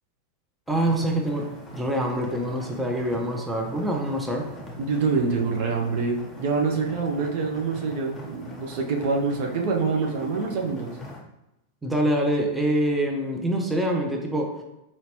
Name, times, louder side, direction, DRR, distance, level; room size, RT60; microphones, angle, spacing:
sound 1, 0.7-11.2, left 1 dB, 10° left, 1.1 m, -43 dB
voice 1, 0.7-1.4 1.7-4.5 11.8-14.5, right 1 dB, 5° right, 1 dB, 0.6 m, -25 dB
voice 2, 4.8-10.9, right 4 dB, 50° right, 1 dB, 0.6 m, -26 dB
4.2 x 2.9 x 3.0 m, 0.91 s
figure-of-eight pair, 90°, 0 cm